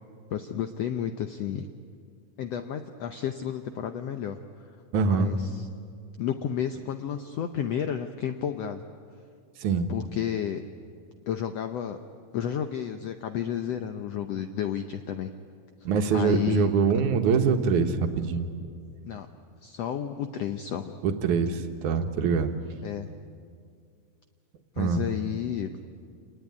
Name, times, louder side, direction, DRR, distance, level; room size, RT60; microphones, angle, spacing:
voice 1, 0.3-1.7 2.4-4.4 5.1-5.7 6.2-8.8 9.9-10.6 11.3-12.0 12.3-15.3 16.1-16.7 19.0-19.3 19.6-21.0 22.8-23.1 24.7-25.7, left 9 dB, 85° left, 7 dB, 1.4 m, -31 dB
voice 2, 4.9-5.3 9.6-9.9 15.9-18.5 21.0-22.5 24.8-25.0, right 5 dB, 65° right, 6 dB, 2.6 m, -24 dB
27.5 x 19.5 x 9.6 m, 2.2 s
omnidirectional pair, 4.1 m